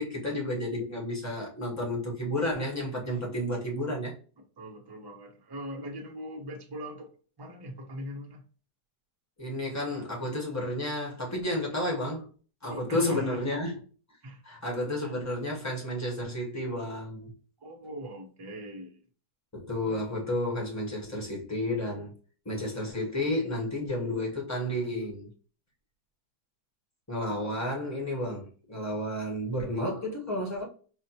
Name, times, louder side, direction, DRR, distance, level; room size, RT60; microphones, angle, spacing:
voice 1, 0.0-4.1 9.4-12.3 12.6-13.8 14.4-17.3 19.5-22.1 22.4-25.3 27.1-30.6, left 1 dB, 15° left, 0.8 m, -31 dB
voice 2, 4.4-8.4 12.7-13.5 14.2-14.4 17.6-19.0, equal, 25° right, 0.5 m, -41 dB
4.9 x 2.1 x 2.8 m
omnidirectional pair, 1.8 m